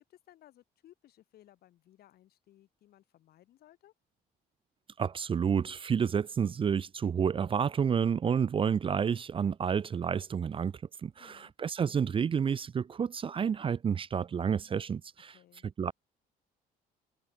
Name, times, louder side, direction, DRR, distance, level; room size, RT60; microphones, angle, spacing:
voice 1, 0.1-3.9 11.2-11.5 15.3-15.7, left 13 dB, 65° left, 2.9 m, -60 dB
voice 2, 5.0-10.7 11.0-15.4 15.8-15.9, right 7 dB, 30° right, 0.6 m, -30 dB
cardioid pair, 110°, 17 cm